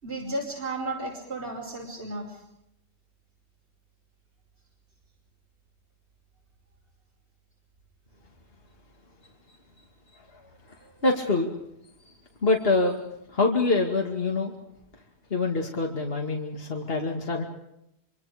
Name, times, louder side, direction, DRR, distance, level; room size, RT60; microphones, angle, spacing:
voice 1, 0.0-2.4, right 2 dB, 80° right, -3 dB, 5.5 m, -33 dB
voice 2, 11.0-11.5 12.4-13.0 13.3-14.5 15.3-17.5, left 3 dB, 60° left, 1 dB, 2.6 m, -25 dB
26.0 x 25.5 x 5.1 m, 0.81 s
omnidirectional pair, 1.1 m